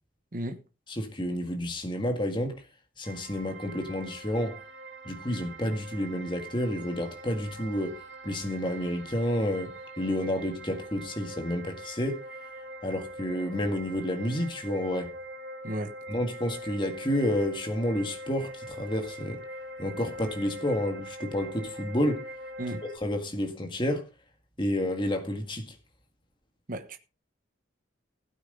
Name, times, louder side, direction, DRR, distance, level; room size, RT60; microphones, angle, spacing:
voice 1, 0.3-0.6 15.6-15.9 22.6-22.8 26.7-27.0, right 1 dB, 40° right, 1.1 m, -34 dB
voice 2, 0.9-2.6 3.0-4.6 5.0-12.2 12.8-15.1 16.1-19.4 19.8-22.2 22.9-24.1 24.6-25.7, left 1 dB, 25° left, 1.8 m, -30 dB
sound 1, 3.0-23.0, right 1 dB, 65° right, 2.5 m, -43 dB
16.5 x 9.1 x 3.9 m
head